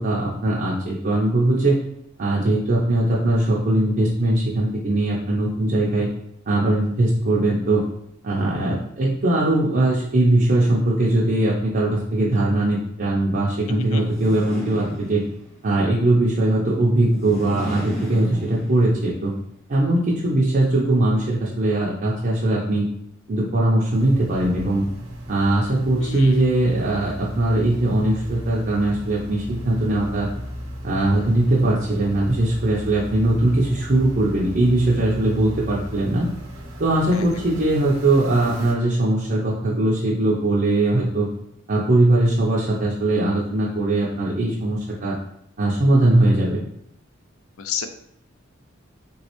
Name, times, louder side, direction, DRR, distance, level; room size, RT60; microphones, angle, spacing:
voice 1, 0.0-1.8 2.2-6.1 6.5-7.8 8.2-15.2 15.6-19.3 19.7-22.9 23.3-24.8 25.3-30.3 30.8-36.3 36.8-41.3 41.7-45.2 45.6-46.6, right 1 dB, 45° right, -5 dB, 0.5 m, -20 dB
voice 2, 13.7-14.0 25.9-26.3 37.1-37.2 47.6-47.9, left 7 dB, 85° left, 8 dB, 0.4 m, -30 dB
sound 1, 13.9-15.6 17.0-19.1, right 1 dB, 30° left, 1.2 m, -34 dB
sound 2, 23.9-38.7, equal, 80° right, 0.8 m, -36 dB
3.2 x 3.1 x 3.0 m, 0.71 s
head